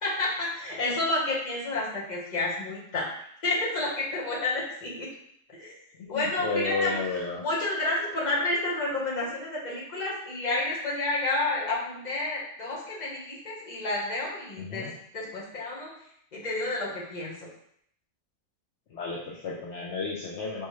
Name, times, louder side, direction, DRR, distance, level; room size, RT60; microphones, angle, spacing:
voice 1, 0.0-3.1 3.4-5.1 5.6-5.7 6.1-7.0 7.4-14.9 15.1-15.9 16.3-17.5, left 2 dB, 35° left, -5 dB, 1.2 m, -30 dB
voice 2, 6.0-7.4 14.6-14.9 18.9-20.7, left 4 dB, 65° left, -4 dB, 1.0 m, -32 dB
4.2 x 3.6 x 3.1 m, 0.68 s
omnidirectional pair, 1.4 m